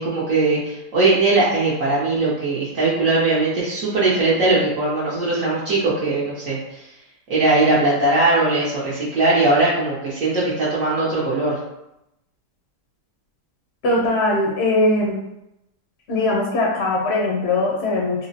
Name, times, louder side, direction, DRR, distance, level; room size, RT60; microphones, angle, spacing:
voice 1, 0.0-6.9 7.3-11.6, right 2 dB, 60° right, -8 dB, 0.9 m, -20 dB
voice 2, 13.8-15.2 16.1-18.3, left 2 dB, 65° left, -2 dB, 0.6 m, -20 dB
3.6 x 2.0 x 2.6 m, 0.86 s
omnidirectional pair, 1.8 m